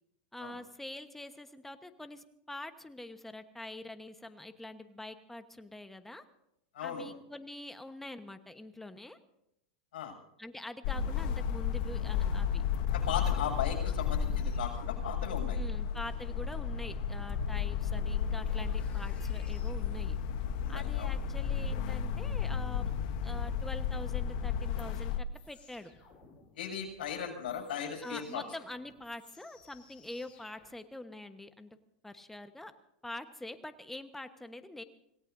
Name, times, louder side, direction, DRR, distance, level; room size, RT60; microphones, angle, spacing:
voice 1, 0.3-6.2 6.8-9.2 10.4-12.6 15.5-20.2 20.7-23.0 23.2-25.9 28.0-31.8 32.0-32.7 33.0-34.8, left 1 dB, 5° left, 8 dB, 1.2 m, -45 dB
voice 2, 6.7-7.1 9.9-10.2 12.9-15.6 20.6-21.1 26.5-28.4, left 8 dB, 80° left, 2 dB, 6.9 m, -37 dB
sound 1, 10.8-25.2, left 7 dB, 60° left, 1.1 m, -33 dB
sound 2, 14.0-30.7, equal, 25° left, 7.4 m, -58 dB
26.5 x 18.0 x 2.7 m, 0.80 s
supercardioid pair, 125°, 5 cm